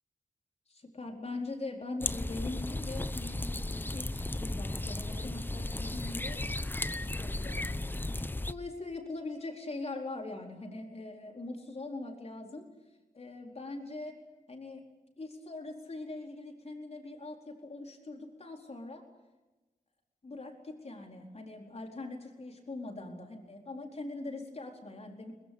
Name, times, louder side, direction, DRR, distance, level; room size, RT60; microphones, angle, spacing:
voice 1, 0.7-6.4 6.9-12.7 13.1-14.2 14.5-14.9 15.2-19.0 20.2-25.3, left 2 dB, 45° left, 2 dB, 4.4 m, -42 dB
sound 1, 2.0-8.5, left 2 dB, 15° left, 0.8 m, -35 dB
22.5 x 21.0 x 8.7 m, 1.1 s
wide cardioid pair, 100°, 15 cm